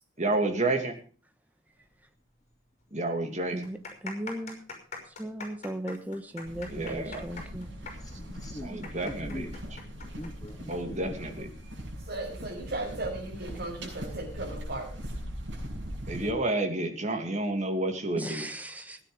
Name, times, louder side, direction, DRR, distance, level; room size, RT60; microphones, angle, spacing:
voice 1, 0.2-1.0 2.9-3.6 6.7-7.2 8.6-9.5 10.7-11.5 16.1-18.5, right 2 dB, 40° right, 4 dB, 2.6 m, -30 dB
sound 1, 2.4-2.5 2.8-2.9 3.5-10.8 11.0-11.1 11.9-12.2, left 4 dB, 40° left, 5.7 m, -43 dB
voice 2, 3.5-4.6 5.2-7.7 18.1-19.0, right 1 dB, 10° right, 8 dB, 1.3 m, -37 dB
sound 2, 6.4-16.3, equal, 80° right, 6.7 m, -40 dB
voice 3, 8.0-9.5 10.0-11.2 16.1-16.3, left 1 dB, 20° left, 6 dB, 1.0 m, -43 dB
voice 4, 12.1-14.9, right 2 dB, 60° right, -1 dB, 6.2 m, -36 dB
16.5 x 10.0 x 5.2 m, 0.40 s
head